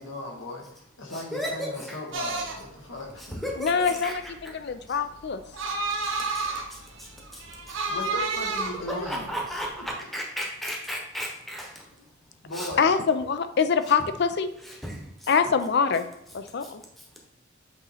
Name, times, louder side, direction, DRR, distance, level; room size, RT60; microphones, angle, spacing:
voice 1, 0.0-3.4 7.9-9.3 11.9-12.0 12.4-12.9, left 2 dB, 80° left, 0 dB, 1.4 m, -37 dB
voice 2, 1.1-2.0 3.2-4.2 4.4-4.5 4.9-5.0 6.0-6.1 6.3-7.8 8.7-11.8 12.5-12.7 14.6-15.3 16.6-16.7, equal, ahead, -1 dB, 0.9 m, -35 dB
sound 1, 2.1-9.9, right 3 dB, 70° right, 0.8 m, -32 dB
voice 3, 3.6-5.4 8.9-9.2 12.8-14.5 15.3-16.1 16.3-16.8, left 6 dB, 55° left, 10 dB, 0.4 m, -25 dB
7.9 x 3.0 x 4.1 m, 0.81 s
head